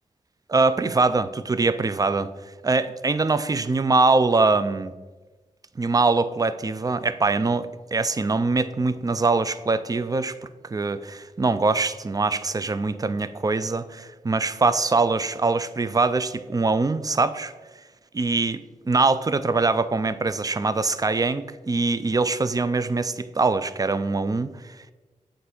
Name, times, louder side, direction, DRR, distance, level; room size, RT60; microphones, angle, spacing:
voice 1, 0.5-2.3 2.6-4.9 5.8-10.4 10.6-17.5 18.1-18.6 18.9-24.9, right 3 dB, 25° right, 13 dB, 0.4 m, -23 dB
7.8 x 2.6 x 6.0 m, 1.2 s
cardioid pair, 45°, 14 cm